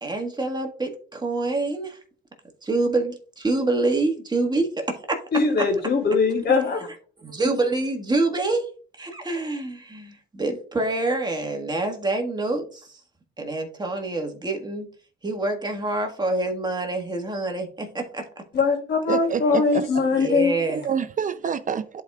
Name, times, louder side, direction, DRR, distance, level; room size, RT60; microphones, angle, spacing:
voice 1, 0.0-2.0 2.6-5.2 5.6-5.7 7.2-8.6 9.0-12.9 13.4-14.9 15.2-18.3 20.1-20.8, right 2 dB, 20° right, 1.6 m, -26 dB
voice 2, 5.3-6.9 18.5-20.6, left 4 dB, 60° left, 2.8 m, -21 dB
voice 3, 19.1-19.9 20.7-22.0, right 7 dB, 40° right, 0.5 m, -27 dB
11.0 x 4.6 x 2.4 m
cardioid pair, 90°, 20 cm